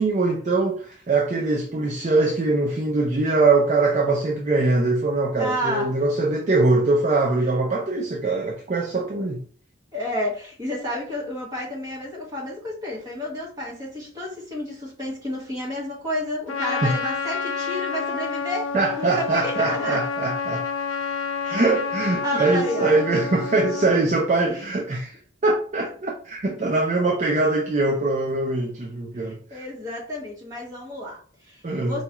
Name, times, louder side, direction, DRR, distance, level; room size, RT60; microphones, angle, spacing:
voice 1, 0.0-9.4 16.8-16.9 18.7-20.6 21.5-29.6 31.6-32.0, right 3 dB, 35° right, 0.5 m, -22 dB
voice 2, 5.4-5.9 9.9-20.0 21.4-21.6 22.2-23.0 24.5-24.7 29.1-32.0, left 1 dB, 20° right, 1.4 m, -31 dB
Trumpet, 16.5-24.1, left 5 dB, 85° left, 0.4 m, -29 dB
4.3 x 2.3 x 2.9 m
head